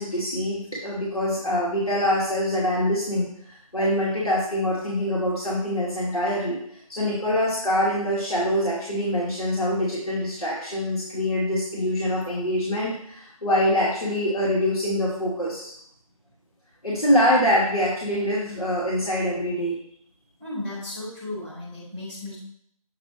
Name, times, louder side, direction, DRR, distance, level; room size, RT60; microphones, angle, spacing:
voice 1, 0.0-6.6 6.9-15.7 16.8-19.8, equal, 75° left, -7 dB, 2.4 m, -24 dB
voice 2, 20.4-22.4, left 1 dB, 5° left, -9 dB, 1.6 m, -34 dB
7.8 x 3.3 x 4.9 m, 0.67 s
figure-of-eight pair, 160°, 19 cm